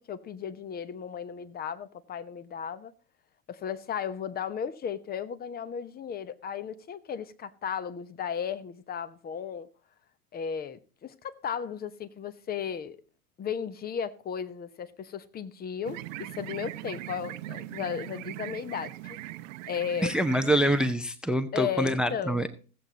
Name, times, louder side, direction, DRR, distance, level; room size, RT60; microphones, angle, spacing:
voice 1, 0.1-2.9 3.5-9.7 10.3-13.0 13.4-19.2 19.7-20.1 21.5-22.5, left 7 dB, 20° left, 0.9 m, -35 dB
sound 1, 15.8-20.9, right 16 dB, 55° right, 0.8 m, -40 dB
voice 2, 20.0-22.5, equal, ahead, 0.5 m, -25 dB
16.5 x 7.8 x 4.0 m
hypercardioid pair, 95°, 46 cm